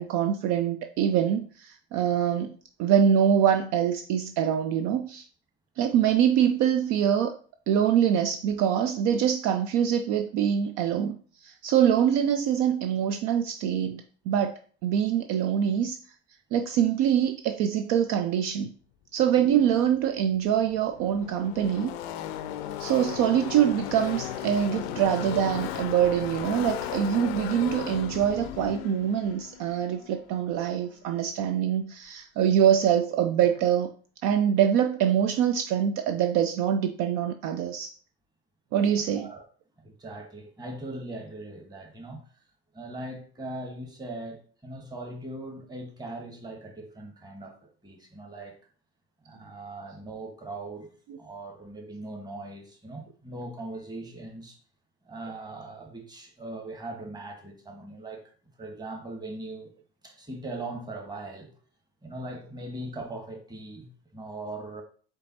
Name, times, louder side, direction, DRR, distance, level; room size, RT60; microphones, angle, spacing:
voice 1, 0.0-2.5 2.8-5.3 5.8-7.4 7.7-11.1 11.4-16.0 16.5-18.7 19.1-21.9 22.8-33.9 34.2-37.9 38.7-39.3, right 9 dB, 55° right, 0.5 m, -24 dB
Car passing by / Race car auto racing, 20.0-20.1 20.2-30.8, left 11 dB, 70° left, 0.5 m, -36 dB
voice 2, 39.8-42.2 42.7-47.6 47.8-48.6 49.2-50.9 51.2-54.6 55.0-58.2 58.6-59.7 60.0-61.5 62.0-64.8, right 2 dB, 10° right, 1.2 m, -40 dB
4.5 x 3.4 x 2.7 m
hypercardioid pair, 70°, 33 cm